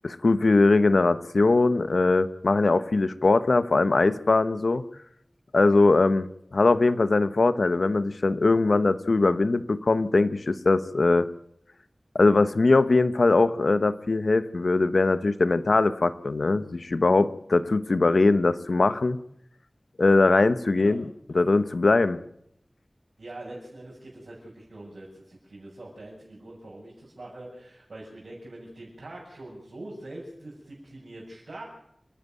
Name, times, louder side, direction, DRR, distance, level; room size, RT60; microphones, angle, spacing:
voice 1, 0.0-4.8 5.5-6.3 6.5-11.3 12.1-19.2 20.0-21.1 21.3-22.2, left 3 dB, 80° left, 12 dB, 1.0 m, -21 dB
voice 2, 23.2-31.6, right 1 dB, 85° right, -4 dB, 7.0 m, -43 dB
28.5 x 11.0 x 9.3 m, 0.77 s
wide cardioid pair, 60°, 0 cm